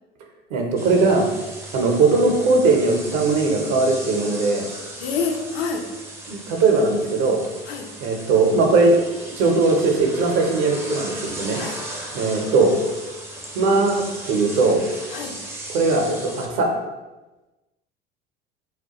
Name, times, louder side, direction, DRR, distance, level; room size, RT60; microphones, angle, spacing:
voice 1, 0.5-1.3 1.7-4.6 6.3-7.4 8.0-9.0 9.2-11.6 12.1-12.7 13.5-14.8 15.7-16.7, right 3 dB, 60° right, 2 dB, 0.6 m, -19 dB
sound 1, 0.8-16.5, right 1 dB, 10° right, 0.4 m, -37 dB
voice 2, 5.0-5.9 7.7-7.9 11.5-11.8 15.1-15.4, left 5 dB, 70° left, 4 dB, 0.5 m, -27 dB
2.2 x 2.2 x 2.8 m, 1.1 s
hypercardioid pair, 75°, 32 cm